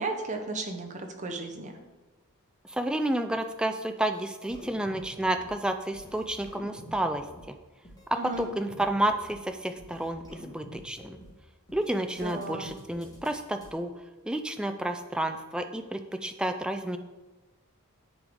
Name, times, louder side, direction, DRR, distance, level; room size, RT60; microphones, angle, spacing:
voice 1, 0.0-1.7 8.1-8.5 12.2-12.7, right 3 dB, 35° right, 3 dB, 0.8 m, -34 dB
voice 2, 2.6-7.5 8.1-11.2 11.7-13.9 14.3-17.0, right 1 dB, 5° right, 6 dB, 0.3 m, -30 dB
sound 1, 4.1-4.2 4.5-5.5 5.8-7.4 7.8-8.0 8.3-9.4 9.6-11.3 11.7-11.9 12.2-13.7, left 1 dB, 15° left, 1.6 m, -47 dB
9.8 x 3.8 x 3.6 m, 1.2 s
head